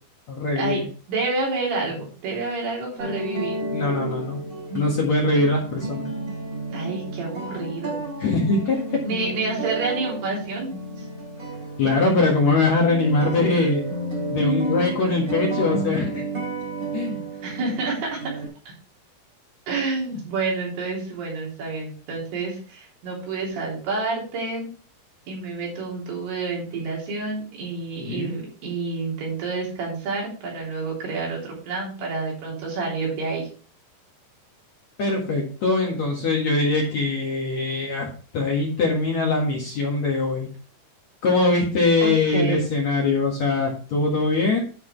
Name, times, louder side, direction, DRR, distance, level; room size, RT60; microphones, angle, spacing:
voice 1, 0.3-0.8 3.7-4.4 4.7-6.1 8.2-8.8 11.8-13.8 14.3-16.2 16.9-17.2 28.0-28.3 35.0-38.1 38.3-40.5 41.2-44.6, left 3 dB, 55° left, -1 dB, 2.3 m, -22 dB
voice 2, 1.1-3.6 6.7-8.0 9.0-11.1 17.4-18.5 19.7-24.7 25.3-33.5 42.0-42.6, right 3 dB, 70° right, -3 dB, 5.5 m, -29 dB
sound 1, 3.0-18.5, right 2 dB, 20° right, 3.7 m, -31 dB
10.5 x 6.0 x 4.5 m, 0.40 s
omnidirectional pair, 4.9 m